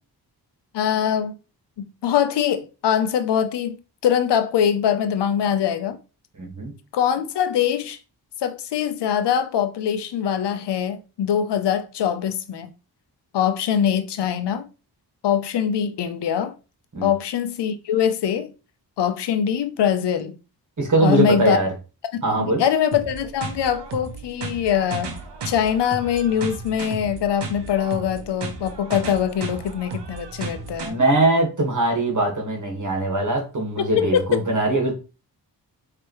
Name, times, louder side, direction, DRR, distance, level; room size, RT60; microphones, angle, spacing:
voice 1, 0.7-1.4 1.8-6.0 6.9-8.0 8.4-12.7 13.3-14.6 15.2-16.5 17.0-18.5 19.0-20.4 21.0-21.6 22.4-25.1 25.4-31.0 33.8-34.3, left 9 dB, 80° left, 0.7 m, -23 dB
voice 2, 6.4-6.7 16.9-17.1 20.8-21.7 22.2-22.6 30.8-34.9, right 2 dB, 45° right, 1.7 m, -21 dB
sound 1, 22.9-30.9, right 4 dB, 80° right, 0.9 m, -34 dB
4.6 x 3.0 x 3.0 m
cardioid pair, 65°, 41 cm